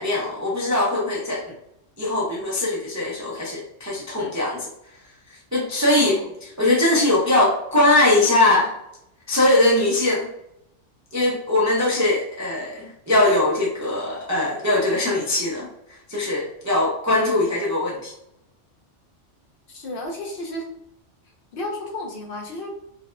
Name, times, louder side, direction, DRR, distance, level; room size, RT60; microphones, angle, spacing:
voice 1, 0.0-1.5 2.0-4.7 5.5-8.7 9.3-10.3 11.1-15.7 16.1-18.1, left 2 dB, 30° right, -5 dB, 0.3 m, -21 dB
voice 2, 19.7-20.7 21.5-22.7, left 1 dB, 60° left, 1 dB, 0.7 m, -32 dB
3.9 x 2.1 x 2.4 m, 0.82 s
omnidirectional pair, 1.2 m